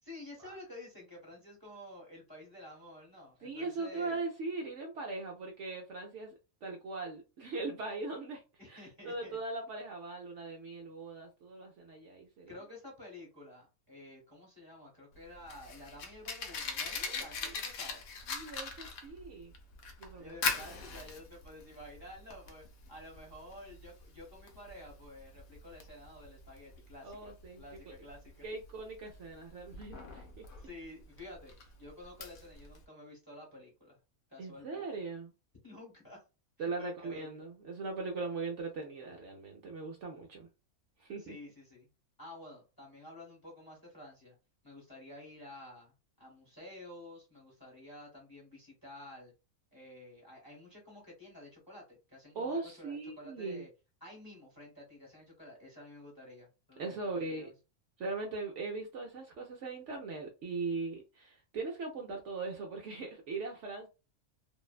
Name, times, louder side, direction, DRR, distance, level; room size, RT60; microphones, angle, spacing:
voice 1, 0.0-4.2 8.6-9.4 12.5-18.0 20.2-28.4 30.6-31.5 31.8-34.0 34.3-34.9 35.6-36.2 36.8-37.3 41.2-41.9 42.2-44.3 44.6-45.9 46.2-49.3 49.7-53.7 54.0-57.5, left 1 dB, 20° left, 0.8 m, -51 dB
voice 2, 3.4-6.3 6.6-8.4 8.7-12.6 17.0-17.5 18.3-19.5 20.0-20.3 20.7-20.8 27.0-27.6 28.4-30.4 34.4-35.3 36.6-40.5 41.0-41.4 52.3-53.7 56.8-57.5 58.0-63.9, right 3 dB, 65° right, 0.8 m, -40 dB
Fire, 15.1-32.8, left 4 dB, 70° left, 0.9 m, -41 dB
2.6 x 2.1 x 2.4 m
omnidirectional pair, 1.5 m